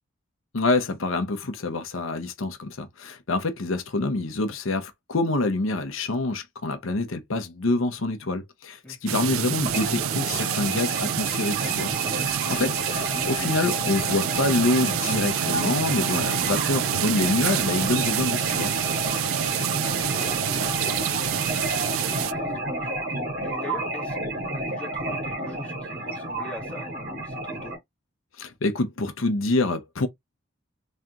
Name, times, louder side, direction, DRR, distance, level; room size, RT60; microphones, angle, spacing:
voice 1, 0.5-18.7 28.4-30.1, left 2 dB, 80° left, 0.8 m, -26 dB
voice 2, 8.8-9.3 12.4-12.9 19.3-19.5 19.8-27.8, left 2 dB, 5° left, 1.6 m, -43 dB
sound 1, 9.1-22.3, right 11 dB, 85° right, 0.3 m, -27 dB
sound 2, 9.6-27.8, right 1 dB, 45° right, 1.8 m, -30 dB
3.7 x 3.2 x 2.9 m
head